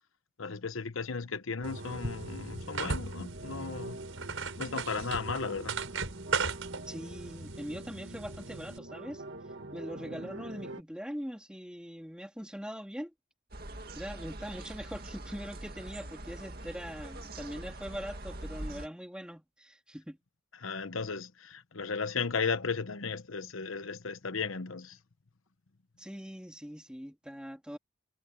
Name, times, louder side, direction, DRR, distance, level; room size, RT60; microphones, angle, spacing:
voice 1, 0.4-4.0 4.6-5.8 20.6-25.0, left 5 dB, 85° left, 1.0 m, -35 dB
sound 1, 1.6-10.8, right 2 dB, 65° right, 2.0 m, -45 dB
sound 2, 1.6-8.8, right 4 dB, 85° right, 5.8 m, -38 dB
voice 2, 6.9-9.2 9.7-13.1 14.0-20.2 26.0-27.8, equal, 5° right, 2.5 m, -42 dB
sound 3, 13.5-18.9, right 1 dB, 50° right, 2.2 m, -43 dB
head